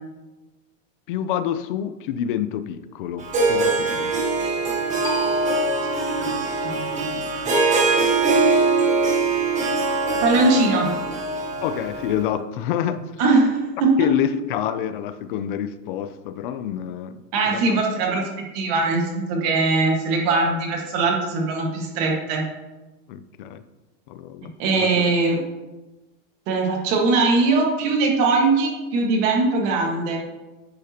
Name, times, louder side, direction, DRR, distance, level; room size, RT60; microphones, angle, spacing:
voice 1, 1.1-4.1 10.1-10.2 11.6-13.0 14.0-17.2 17.5-17.8 23.1-23.6 24.1-25.1, left 10 dB, 40° left, 12 dB, 0.5 m, -27 dB
Harp, 3.2-12.2, right 3 dB, 20° right, 1.4 m, -22 dB
sound 1, 5.0-10.3, right 2 dB, 5° left, 0.7 m, -37 dB
voice 2, 5.8-7.5 10.2-10.9 13.2-14.1 17.3-18.2 18.5-22.4 24.6-25.4 26.5-30.2, right 3 dB, 35° right, 0 dB, 1.6 m, -21 dB
10.5 x 8.4 x 2.9 m, 1.1 s
supercardioid pair, 175°, 39 cm